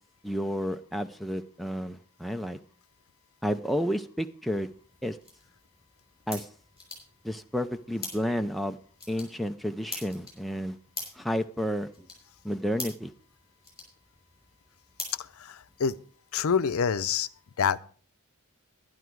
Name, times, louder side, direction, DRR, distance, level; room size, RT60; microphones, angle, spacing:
voice 1, 0.2-2.6 3.4-4.7 5.0-5.2 6.3-6.5 7.2-8.8 9.1-10.8 11.2-11.9 12.4-13.1, equal, ahead, 6 dB, 0.4 m, -31 dB
sound 1, 4.5-16.0, left 3 dB, 15° left, 5.7 m, -45 dB
voice 2, 15.2-16.0 16.3-17.3 17.6-17.8, left 6 dB, 70° left, 15 dB, 0.5 m, -27 dB
11.5 x 11.0 x 4.6 m, 0.43 s
head